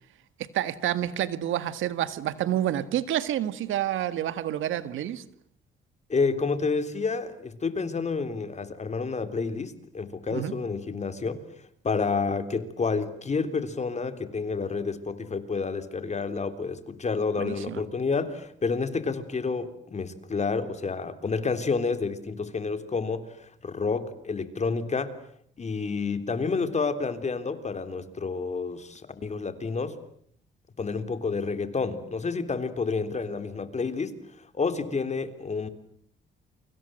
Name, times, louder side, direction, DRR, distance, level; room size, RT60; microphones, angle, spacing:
voice 1, 0.4-5.2 10.3-10.5 17.4-17.8, right 12 dB, 80° right, 14 dB, 1.7 m, -29 dB
voice 2, 6.1-11.4 11.8-23.3 23.6-25.1 25.6-30.0 30.8-34.2 34.5-35.7, left 4 dB, 35° left, 10 dB, 3.4 m, -29 dB
29.0 x 25.5 x 7.7 m, 0.64 s
cardioid pair, 90°, 20 cm